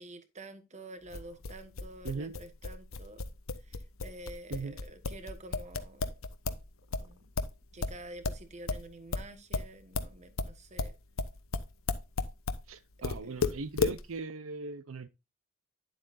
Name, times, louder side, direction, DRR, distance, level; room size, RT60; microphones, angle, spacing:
voice 1, 0.0-3.2 3.7-6.1 7.0-7.3 7.7-10.9 13.2-13.4, right 2 dB, 35° right, 1.3 m, -48 dB
sound 1, 1.1-6.6 6.9-12.6 13.0-14.0, left 4 dB, 80° left, 1.0 m, -33 dB
voice 2, 2.0-2.4 4.5-4.8 12.7-15.1, right 4 dB, 80° right, 0.6 m, -39 dB
10.5 x 7.7 x 2.6 m
head